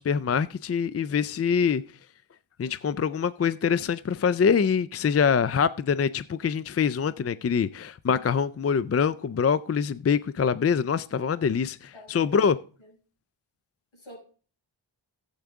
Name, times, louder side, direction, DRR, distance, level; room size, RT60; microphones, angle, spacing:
voice 1, 0.0-1.8 2.6-12.6, left 6 dB, 30° left, 0.4 m, -24 dB
voice 2, 11.9-12.9 13.9-14.2, equal, 70° left, 6.3 m, -48 dB
14.0 x 8.0 x 3.5 m
wide cardioid pair, 65°, 50 cm